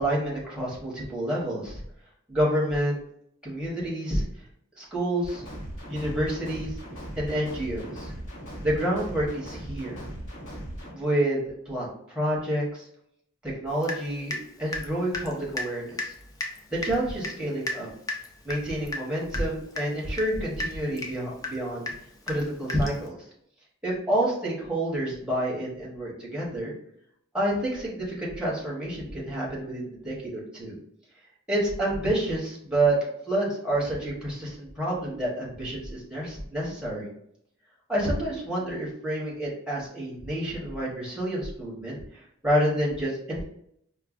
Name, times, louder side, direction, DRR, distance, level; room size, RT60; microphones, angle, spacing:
voice 1, 0.0-1.8 2.3-3.0 3.4-4.2 4.8-5.4 5.9-6.7 7.2-8.1 8.6-10.0 10.9-12.8 13.4-16.1 16.7-17.9 18.4-21.9 22.3-23.1 23.8-26.7 27.3-30.8 31.5-33.0 33.3-37.1 37.9-43.4, right 1 dB, 5° right, -5 dB, 0.8 m, -28 dB
sound 1, 5.2-10.9, equal, 60° left, 1.3 m, -38 dB
Water tap faucet / Drip, 13.8-14.5 14.7-23.1, left 2 dB, 15° left, 0.3 m, -35 dB
4.5 x 2.2 x 2.4 m, 0.71 s
head